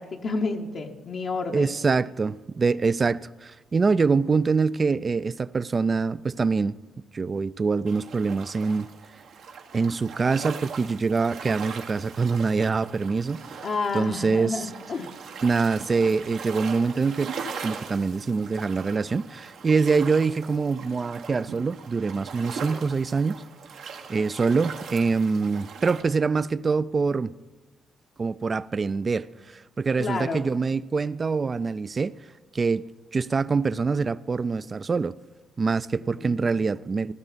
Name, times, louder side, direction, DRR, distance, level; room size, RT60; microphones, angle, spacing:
voice 1, 0.0-1.7 13.6-15.1 30.0-30.4 36.0-36.5, left 4 dB, 60° left, 0.9 m, -30 dB
voice 2, 1.5-6.8 7.1-8.9 9.7-13.4 13.9-14.7 15.4-23.4 24.1-27.3 28.2-32.1 32.5-32.9 33.1-35.2 35.6-37.1, right 4 dB, 40° right, 0.4 m, -25 dB
sound 1, 7.9-26.0, right 6 dB, 80° right, 1.3 m, -40 dB
16.0 x 12.5 x 4.0 m
cardioid pair, 75°, 0 cm